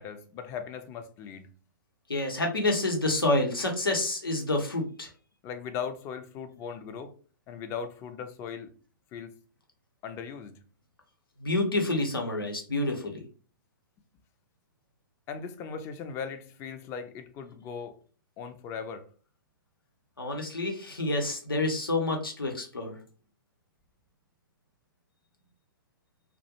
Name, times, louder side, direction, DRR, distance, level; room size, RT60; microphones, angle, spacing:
voice 1, 0.0-1.5 5.4-7.1 7.5-8.7 9.1-9.3 10.0-10.6 15.3-18.0 18.4-19.0, left 6 dB, 25° left, 0.4 m, -38 dB
voice 2, 2.1-5.1 11.4-13.2 20.2-23.0, left 2 dB, 90° left, 0.8 m, -28 dB
2.3 x 2.1 x 2.7 m
figure-of-eight pair, 120°, 12 cm